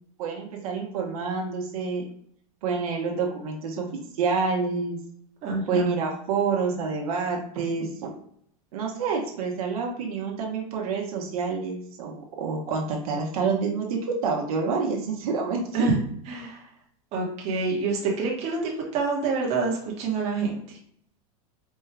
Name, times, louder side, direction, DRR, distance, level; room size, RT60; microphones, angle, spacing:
voice 1, 0.2-2.0 2.6-5.0 5.7-8.1 8.7-15.9, right 5 dB, 70° right, 0 dB, 1.0 m, -28 dB
voice 2, 5.4-5.9 15.7-16.0 16.3-16.6 17.1-20.8, right 3 dB, 35° right, -2 dB, 1.1 m, -27 dB
4.4 x 2.3 x 3.3 m, 0.67 s
supercardioid pair, 150°, 19 cm